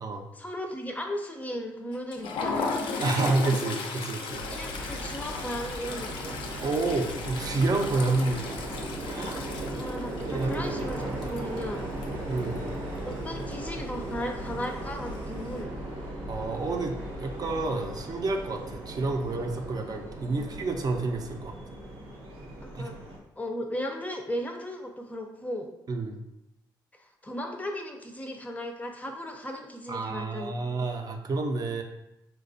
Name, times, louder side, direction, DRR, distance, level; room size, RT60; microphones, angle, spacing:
voice 1, 0.3-2.7 4.5-6.4 9.8-11.9 13.0-15.7 20.3-20.5 22.6-23.0 23.4-25.7 27.0-30.8, equal, 15° left, 3 dB, 0.5 m, -36 dB
Toilet flush, 1.9-12.7 13.0-13.2 13.5-13.7 14.6-15.2, left 4 dB, 75° left, 0.4 m, -36 dB
voice 2, 3.0-4.4 6.6-8.4 9.1-9.4 10.3-10.7 12.3-12.6 16.3-21.6 22.7-22.9 25.9-26.2 29.9-31.8, right 3 dB, 45° right, 3 dB, 0.5 m, -29 dB
sound 1, 4.3-23.2, right 1 dB, 85° right, 0.8 m, -37 dB
4.0 x 2.2 x 2.6 m, 0.87 s
cardioid pair, 80°, 9 cm